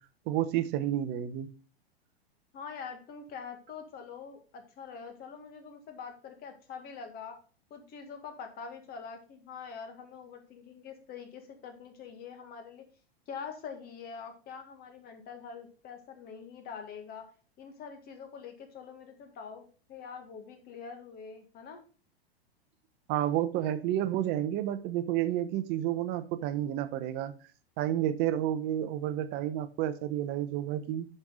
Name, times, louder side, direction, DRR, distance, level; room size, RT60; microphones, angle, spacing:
voice 1, 0.3-1.5 23.1-27.3 27.8-31.1, right 12 dB, 35° right, 12 dB, 0.9 m, -30 dB
voice 2, 2.5-7.4 7.7-12.8 13.3-17.3 17.6-21.9, left 6 dB, 30° left, 6 dB, 1.9 m, -44 dB
10.5 x 5.5 x 3.8 m, 0.37 s
figure-of-eight pair, 95°, 31 cm